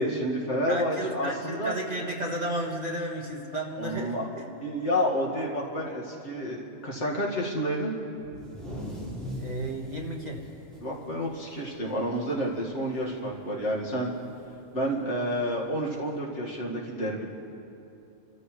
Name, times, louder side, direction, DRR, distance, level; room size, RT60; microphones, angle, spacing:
voice 1, 0.0-1.7 3.8-4.2 4.6-7.9 10.8-14.1 14.7-17.3, equal, 65° left, -3 dB, 2.3 m, -29 dB
voice 2, 0.7-4.2 9.4-10.4, right 1 dB, 35° right, -1 dB, 1.6 m, -33 dB
sound 1, 8.2-11.9 12.3-12.4 12.8-13.2 14.4-14.5 15.5-15.6, equal, ahead, 4.8 m, -40 dB
30.0 x 14.0 x 3.2 m, 2.7 s
omnidirectional pair, 1.3 m